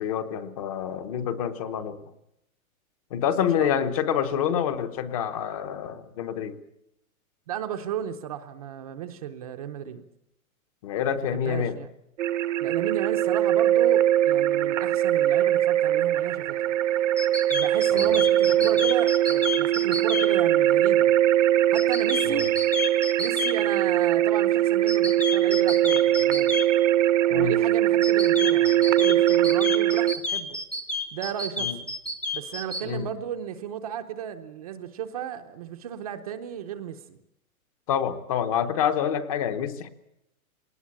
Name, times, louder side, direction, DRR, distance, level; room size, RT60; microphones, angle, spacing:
voice 1, 0.0-2.0 3.1-6.6 10.8-11.8 17.9-18.2 18.6-18.7 22.3-22.5 27.3-27.5 31.6-31.8 32.9-33.1 37.9-39.9, left 8 dB, 25° left, 9 dB, 0.9 m, -27 dB
voice 2, 7.5-10.0 11.2-11.9 12.6-16.7 17.5-21.1 21.7-22.5 23.2-26.5 27.2-30.6 31.1-31.8 32.3-37.2, right 9 dB, 25° right, 6 dB, 0.8 m, -34 dB
sound 1, 12.2-30.2, right 12 dB, 60° right, 1.0 m, -21 dB
sound 2, 17.2-20.3 21.7-23.5 24.9-26.6 28.0-32.8, left 2 dB, 5° left, 0.8 m, -30 dB
20.5 x 19.5 x 8.5 m, 0.79 s
hypercardioid pair, 175°, 43 cm